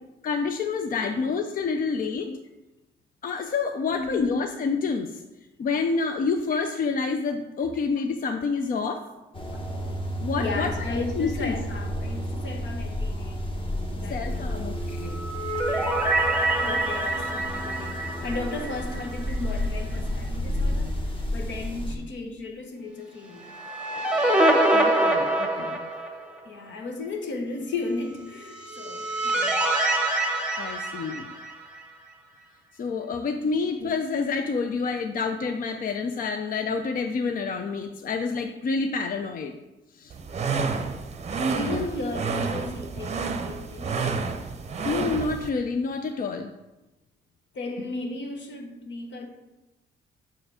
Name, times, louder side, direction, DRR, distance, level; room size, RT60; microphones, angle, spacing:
voice 1, 0.2-2.4 3.2-5.2 5.6-9.1 10.2-10.7 11.2-11.5 14.1-15.2 24.7-25.8 30.6-31.3 32.7-39.5 39.9-40.1 41.6-41.9 44.8-46.5, left 4 dB, 45° left, 6 dB, 0.5 m, -28 dB
voice 2, 1.6-2.0 3.8-4.4 6.5-6.6 9.5-9.6 10.4-13.4 13.9-14.7 15.7-16.1 16.6-23.5 26.4-29.7 33.4-33.6 40.5-40.8 41.5-44.1 47.5-49.3, left 2 dB, 70° left, 3 dB, 1.2 m, -35 dB
sound 1, 9.3-22.0, equal, 25° left, 1.2 m, -31 dB
sound 2, 15.0-19.3 19.6-19.7 23.3-26.4 28.4-31.8, right 1 dB, 5° right, 1.0 m, -25 dB
sound 3, 40.1-45.5, right 5 dB, 35° right, 0.7 m, -30 dB
6.0 x 4.8 x 4.9 m, 1.0 s
cardioid pair, 90°, 20 cm